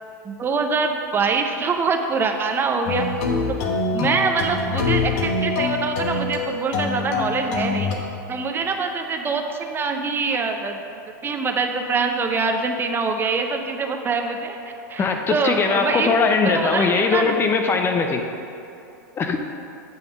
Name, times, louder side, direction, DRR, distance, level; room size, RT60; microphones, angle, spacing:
voice 1, 0.2-3.1 3.9-7.9 8.3-10.8 11.2-14.6 14.9-17.4, right 4 dB, 20° right, 4 dB, 0.5 m, -24 dB
sound 1, 2.9-7.9, left 3 dB, 55° left, 1.0 m, -24 dB
voice 2, 15.0-18.3 19.2-19.4, left 4 dB, 25° left, 5 dB, 0.5 m, -20 dB
7.8 x 3.5 x 6.0 m, 2.8 s
hypercardioid pair, 110°, 10 cm